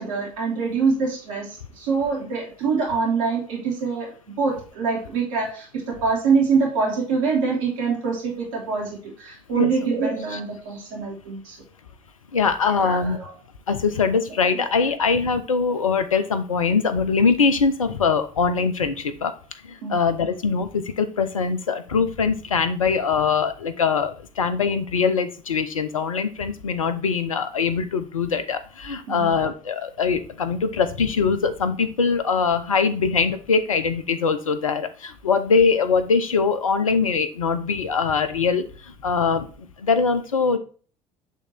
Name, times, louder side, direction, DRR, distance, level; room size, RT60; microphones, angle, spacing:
voice 1, 0.0-11.6 12.7-13.3 19.8-19.9 29.1-29.4, right 5 dB, 70° right, -3 dB, 2.5 m, -25 dB
voice 2, 12.3-13.2 13.7-19.3 19.6-40.6, left 5 dB, 80° left, 11 dB, 0.7 m, -22 dB
8.2 x 3.7 x 4.2 m, 0.39 s
figure-of-eight pair, 60°, 17 cm